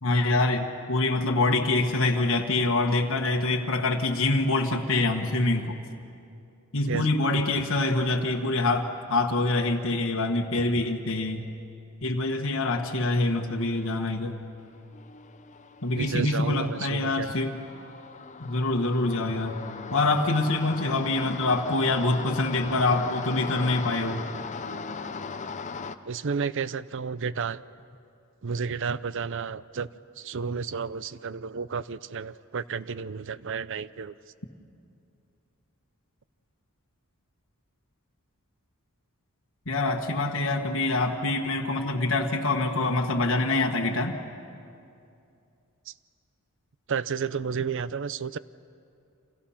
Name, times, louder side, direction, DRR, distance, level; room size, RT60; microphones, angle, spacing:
voice 1, 0.0-5.8 6.7-11.4 12.0-14.4 15.8-17.6 18.4-19.6 19.9-24.2 39.7-44.2, left 2 dB, 60° left, 1 dB, 1.5 m, -25 dB
sound 1, 13.6-13.9 14.2-26.0, left 4 dB, 35° left, 0.7 m, -39 dB
voice 2, 16.0-17.3 26.1-27.6 28.4-29.9 30.2-34.1 45.9-46.0 46.9-48.4, right 5 dB, 60° right, 17 dB, 0.5 m, -31 dB
30.0 x 26.0 x 5.8 m, 2.5 s
head